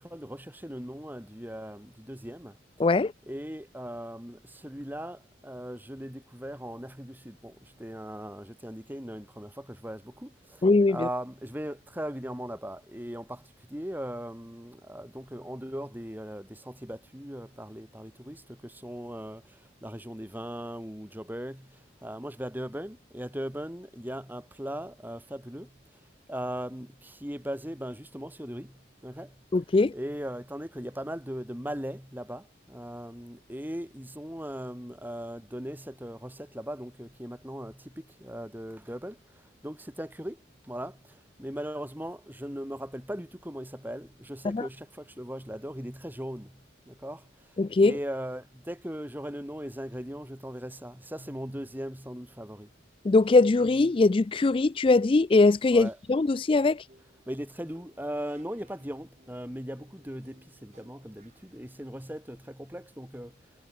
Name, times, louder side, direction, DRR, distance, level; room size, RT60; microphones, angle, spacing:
voice 1, 0.0-2.6 3.3-25.7 26.3-29.4 29.9-40.4 40.6-52.7 55.7-56.0 57.3-63.4, equal, 10° right, 2.7 m, -39 dB
voice 2, 2.8-3.1 10.6-11.1 29.5-29.9 44.4-44.6 47.6-47.9 53.0-56.8, left 3 dB, 25° left, 0.3 m, -21 dB
sound 1, 51.2-51.9 53.6-54.1 54.8-54.9 55.2-55.3 55.5-61.6, equal, 35° right, 7.9 m, -58 dB
head